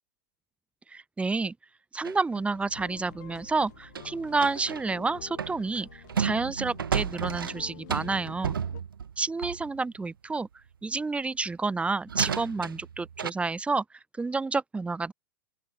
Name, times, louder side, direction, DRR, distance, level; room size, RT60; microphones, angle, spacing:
voice 1, 0.9-1.5 1.9-8.6 9.2-10.5 10.8-13.8 14.2-15.1, right 3 dB, 10° right, 2.7 m, -29 dB
sound 1, 2.0-4.9 5.3-9.8 11.4-11.5 12.1-13.3, right 7 dB, 85° right, 0.6 m, -33 dB
sound 2, 2.6-8.8, left 17 dB, 60° left, 5.3 m, -49 dB
open air
hypercardioid pair, 105°, 11 cm